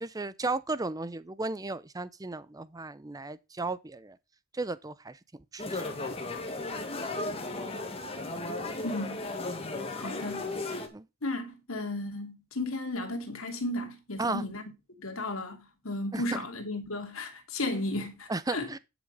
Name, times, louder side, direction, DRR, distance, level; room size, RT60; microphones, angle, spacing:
voice 1, 0.0-4.2 4.5-5.2 5.5-5.9 10.9-11.0 14.2-14.4 16.1-16.4 18.3-18.8, right 3 dB, 15° right, 0.6 m, -34 dB
sound 1, 5.6-10.9, left 2 dB, 30° left, 1.9 m, -35 dB
voice 2, 8.8-9.2 9.9-10.4 11.2-14.6 15.0-18.7, left 2 dB, 70° left, 2.7 m, -34 dB
10.5 x 6.1 x 5.5 m
head